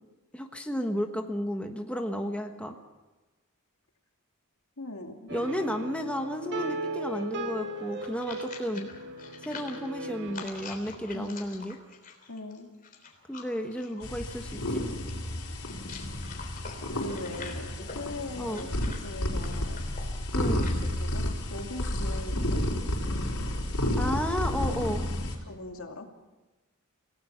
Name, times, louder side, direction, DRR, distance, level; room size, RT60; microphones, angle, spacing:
voice 1, 0.3-2.7 5.3-8.9 9.4-11.8 13.3-14.8 18.4-18.7 20.3-20.7 23.6-25.1, equal, 5° left, 3 dB, 1.3 m, -33 dB
voice 2, 4.8-5.3 11.1-11.6 12.3-12.7 16.9-19.8 21.0-22.6 25.5-26.1, left 2 dB, 70° left, 3 dB, 2.6 m, -40 dB
sound 1, 5.3-10.4, right 1 dB, 55° right, 2.1 m, -37 dB
sound 2, 7.7-20.9, left 4 dB, 40° left, 3.6 m, -46 dB
sound 3, 14.0-25.4, left 1 dB, 90° left, 4.1 m, -31 dB
27.5 x 17.5 x 6.0 m, 1.2 s
head